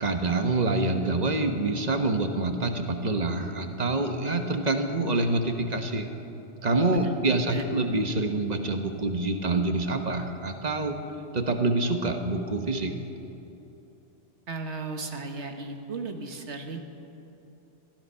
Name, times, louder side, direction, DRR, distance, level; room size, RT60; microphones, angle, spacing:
voice 1, 0.0-6.1 6.6-10.9 11.3-12.9, right 2 dB, 40° right, 6 dB, 1.3 m, -26 dB
voice 2, 14.5-16.8, right 3 dB, 75° right, 5 dB, 1.6 m, -35 dB
18.5 x 13.5 x 5.7 m, 3.0 s
omnidirectional pair, 1.2 m